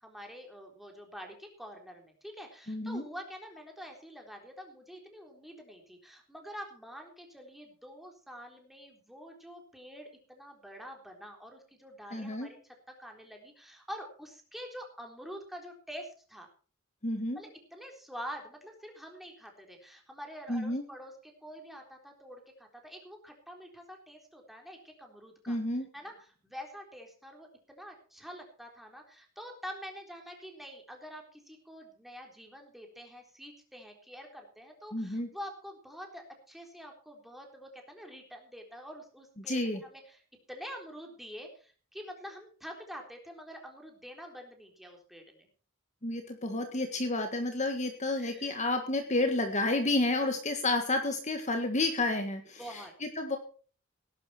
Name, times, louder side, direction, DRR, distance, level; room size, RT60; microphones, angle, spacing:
voice 1, 0.0-16.5 17.4-25.6 25.9-40.2 40.5-45.5 48.2-48.6 52.6-52.9, equal, ahead, 2 dB, 3.8 m, -46 dB
voice 2, 2.7-3.0 12.1-12.5 17.0-17.4 20.5-20.8 25.5-25.9 34.9-35.3 39.5-39.8 46.0-53.4, left 2 dB, 35° left, 5 dB, 1.7 m, -30 dB
18.0 x 11.5 x 4.4 m, 0.40 s
head